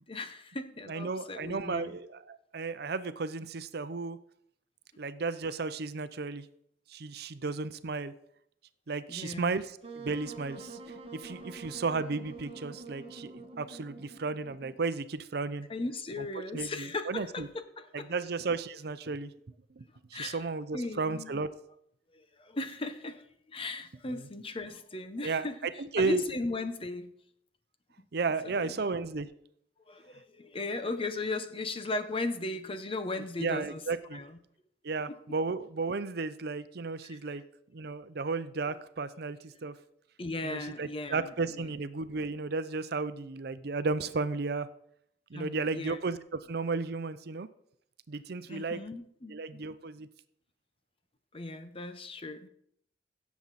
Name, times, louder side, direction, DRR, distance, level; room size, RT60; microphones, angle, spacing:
voice 1, 0.1-2.0 9.1-9.6 11.3-11.5 15.7-18.1 20.1-20.4 20.7-21.3 22.1-27.1 28.4-28.9 29.9-33.8 34.1-34.4 35.1-35.2 37.0-37.4 38.7-38.8 40.2-41.7 45.3-46.0 48.5-49.6 51.3-52.5, left 2 dB, 30° left, 9 dB, 0.8 m, -37 dB
voice 2, 0.9-4.2 5.0-6.5 6.9-8.1 8.9-10.8 11.1-15.7 16.2-16.3 16.5-17.5 17.9-19.3 19.8-19.9 20.1-21.5 25.2-26.2 28.1-29.3 33.4-34.2 34.8-37.4 37.7-39.7 40.4-44.7 45.3-47.5 48.1-48.8 49.3-50.1, right 4 dB, 65° right, 13 dB, 0.6 m, -34 dB
Wind instrument woodwind instrument, 9.8-14.9, right 3 dB, 35° right, 1.3 m, -46 dB
16.5 x 7.2 x 4.1 m, 0.70 s
head